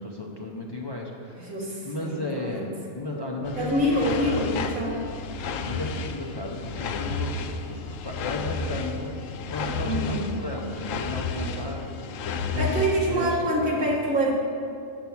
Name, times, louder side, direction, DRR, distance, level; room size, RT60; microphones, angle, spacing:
voice 1, 0.0-1.5 1.8-4.6 5.6-7.3 7.6-9.1 9.5-12.2 12.5-13.9, left 1 dB, 40° left, -2 dB, 0.3 m, -34 dB
voice 2, 1.4-2.7 3.6-5.0 9.9-10.3 12.5-14.3, equal, 65° right, -4 dB, 2.0 m, -26 dB
sound 1, 3.4-13.2, left 4 dB, 70° left, 0.8 m, -32 dB
7.4 x 7.0 x 5.9 m, 2.6 s
omnidirectional pair, 1.6 m